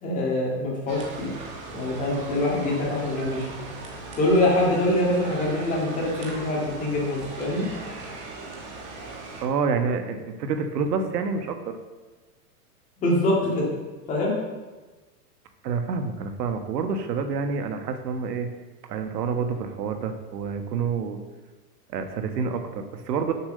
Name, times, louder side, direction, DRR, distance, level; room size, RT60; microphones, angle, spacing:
voice 1, 0.0-1.3 1.7-3.5 4.2-7.7 13.0-13.7 14.1-14.3, left 1 dB, 15° left, -3 dB, 1.9 m, -24 dB
sound 1, 0.9-9.4, right 3 dB, 25° right, 1.3 m, -38 dB
voice 2, 9.4-11.8 15.6-18.5 18.9-21.2 21.9-23.3, right 5 dB, 85° right, 6 dB, 1.3 m, -28 dB
7.2 x 6.6 x 6.6 m, 1.2 s
supercardioid pair, 165°, 47 cm